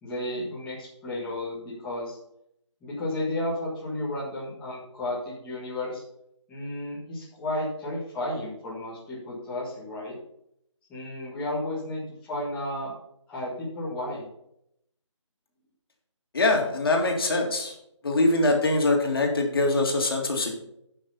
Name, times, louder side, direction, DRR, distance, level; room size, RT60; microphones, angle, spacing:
voice 1, 0.0-2.2 2.8-6.0 6.5-10.1 10.9-12.9 13.3-14.3, left 1 dB, 5° left, -9 dB, 1.6 m, -33 dB
voice 2, 16.3-17.7 18.0-20.5, left 2 dB, 50° left, 1 dB, 2.3 m, -23 dB
10.0 x 6.0 x 5.5 m, 0.77 s
figure-of-eight pair, 165°, 16 cm